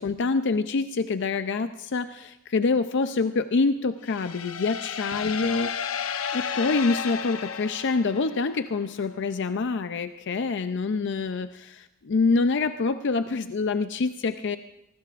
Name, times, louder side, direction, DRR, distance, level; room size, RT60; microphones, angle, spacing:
voice 1, 0.0-5.8 6.3-14.6, left 4 dB, 60° left, 10 dB, 0.5 m, -26 dB
sound 1, 4.0-8.8, left 7 dB, 75° left, 0.8 m, -33 dB
25.0 x 19.5 x 2.5 m, 0.88 s
head